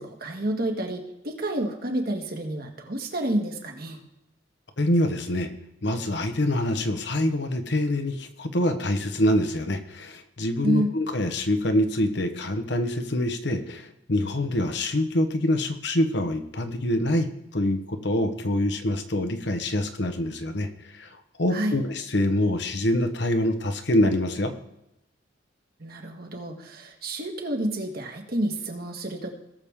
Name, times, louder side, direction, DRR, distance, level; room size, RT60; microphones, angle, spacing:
voice 1, 0.0-4.0 10.6-10.9 21.5-21.7 25.8-29.3, right 1 dB, 55° right, 3 dB, 1.8 m, -29 dB
voice 2, 4.8-5.5 5.8-17.3 17.5-24.5, left 1 dB, 65° left, 8 dB, 1.1 m, -25 dB
18.0 x 6.9 x 3.7 m, 0.85 s
head